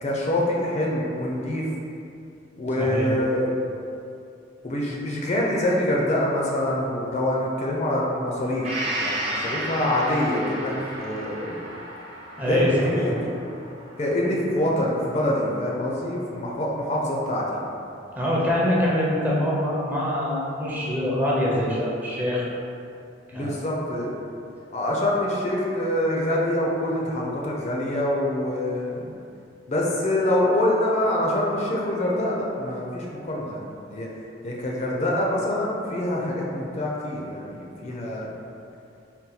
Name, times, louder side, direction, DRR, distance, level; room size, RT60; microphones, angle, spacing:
voice 1, 0.0-1.7 2.6-3.5 4.6-8.7 9.0-11.7 12.4-13.2 14.0-17.6 23.3-24.1 24.7-29.1 29.7-34.1 34.4-38.3, left 1 dB, 40° left, -3 dB, 0.5 m, -25 dB
voice 2, 2.8-3.1 12.4-13.1 18.2-22.5 23.3-23.5, equal, 10° right, -6 dB, 0.6 m, -24 dB
Gong, 8.6-16.3 16.7-16.8, right 1 dB, 35° right, 1.0 m, -34 dB
4.1 x 2.2 x 3.8 m, 2.7 s
head